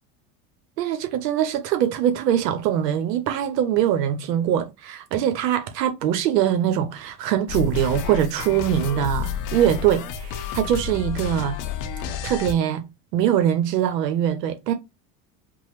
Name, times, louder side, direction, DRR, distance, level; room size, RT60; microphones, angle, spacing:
voice 1, 0.8-11.6 12.2-12.8 13.1-14.7, right 10 dB, 85° right, 0.7 m, -22 dB
sound 1, 7.5-12.5, left 8 dB, 40° left, 0.5 m, -30 dB
3.0 x 2.0 x 2.9 m
hypercardioid pair, 100°, 48 cm